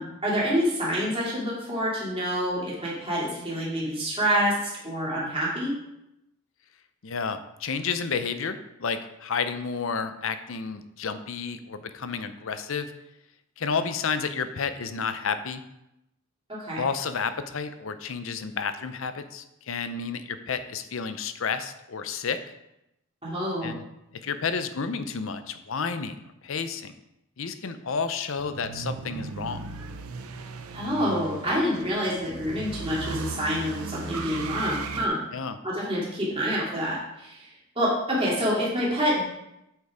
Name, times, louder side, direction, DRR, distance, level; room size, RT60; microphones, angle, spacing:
voice 1, 0.0-5.7 16.5-16.8 23.2-23.7 30.7-35.2 35.6-37.5 37.8-39.3, equal, 25° right, -6 dB, 2.5 m, -27 dB
voice 2, 7.0-12.9 13.6-15.6 16.8-22.4 23.6-23.8 24.2-26.9 27.4-29.6 35.3-35.6, left 5 dB, 65° left, 10 dB, 0.6 m, -31 dB
sound 1, 28.4-35.1, right 3 dB, 80° right, 0.7 m, -37 dB
8.2 x 4.5 x 4.9 m, 0.86 s
head